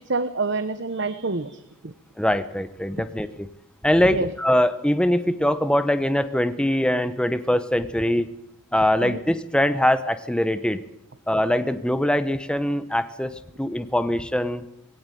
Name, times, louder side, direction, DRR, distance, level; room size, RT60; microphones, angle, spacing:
voice 1, 0.0-1.9 4.1-4.3 9.0-9.2, right 3 dB, 60° right, 11 dB, 1.1 m, -27 dB
voice 2, 2.2-3.5 3.8-8.3 8.7-10.8 11.3-14.6, left 1 dB, 5° left, 12 dB, 0.9 m, -22 dB
21.0 x 17.5 x 9.2 m, 0.81 s
head